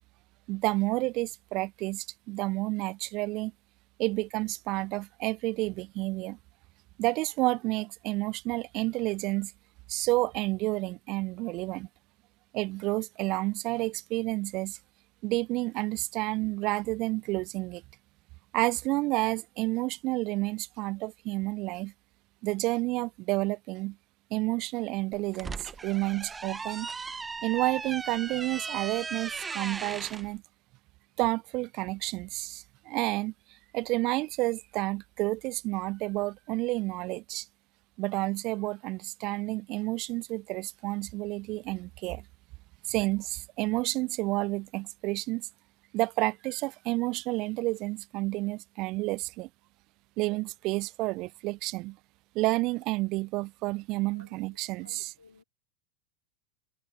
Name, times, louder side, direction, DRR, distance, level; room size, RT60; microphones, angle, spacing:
voice 1, 0.5-3.5 4.0-6.4 7.0-9.5 9.9-11.9 12.5-14.8 15.2-17.8 18.5-21.9 22.4-24.0 24.3-26.9 27.4-30.4 31.2-37.5 38.0-42.3 42.9-45.5 45.9-49.5 50.2-52.0 52.3-55.1, right 22 dB, 45° right, 0.4 m, -30 dB
sound 1, 25.1-30.2, right 4 dB, 15° right, 0.9 m, -37 dB
voice 2, 54.8-55.4, left 4 dB, 85° left, 3.0 m, -56 dB
figure-of-eight pair, 85°, 0 cm